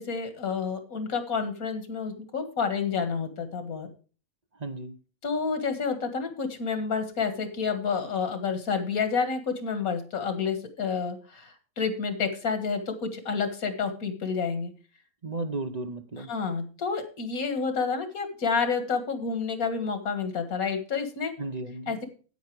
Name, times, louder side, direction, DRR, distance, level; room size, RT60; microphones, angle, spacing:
voice 1, 0.0-3.9 5.2-14.7 16.3-21.3 21.9-22.0, left 5 dB, 85° left, 8 dB, 2.1 m, -29 dB
voice 2, 4.5-5.0 15.2-16.3 21.4-22.0, right 2 dB, 35° right, 8 dB, 0.9 m, -34 dB
9.4 x 8.5 x 4.7 m, 0.38 s
omnidirectional pair, 1.5 m